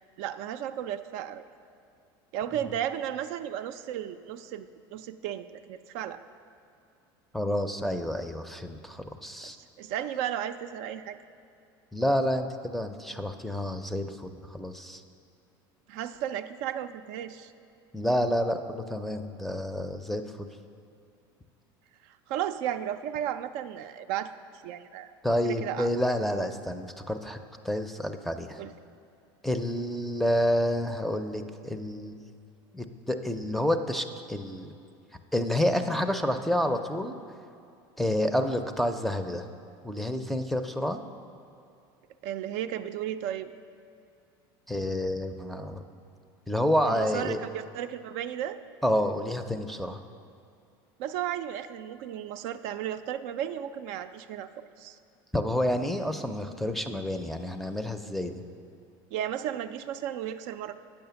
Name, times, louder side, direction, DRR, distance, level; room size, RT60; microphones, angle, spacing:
voice 1, 0.2-1.4 2.3-6.2 9.4-11.2 15.9-17.5 22.0-25.1 25.4-25.9 28.6-28.7 42.2-43.5 46.9-48.6 51.0-55.0 59.1-60.7, right 10 dB, 65° right, 9 dB, 0.4 m, -34 dB
voice 2, 7.3-9.6 11.9-15.0 17.9-20.5 25.2-27.4 27.6-28.6 29.4-32.2 32.7-34.7 35.3-37.1 38.0-39.5 39.8-41.0 44.7-45.8 46.5-47.4 48.8-50.0 55.3-58.4, left 1 dB, ahead, 8 dB, 0.5 m, -29 dB
8.7 x 5.8 x 6.9 m, 2.5 s
supercardioid pair, 100°, 12 cm